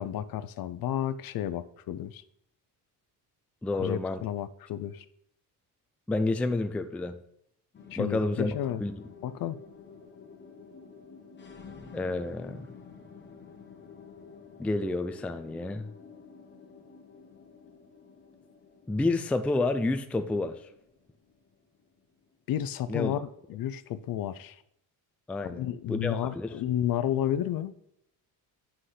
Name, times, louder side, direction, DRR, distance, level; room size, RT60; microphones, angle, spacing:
voice 1, 0.0-2.2 3.8-5.1 7.9-8.8 9.2-9.6 22.5-23.2 23.5-24.6 25.5-27.7, left 11 dB, 60° left, 0.5 m, -31 dB
voice 2, 3.6-4.2 6.1-7.2 8.0-8.9 11.9-12.7 14.6-15.9 18.9-20.6 22.9-23.1 25.3-26.5, left 2 dB, 5° left, 0.3 m, -29 dB
sound 1, 7.7-22.3, left 5 dB, 25° left, 1.0 m, -51 dB
7.7 x 5.8 x 3.2 m
cardioid pair, 110°, 40 cm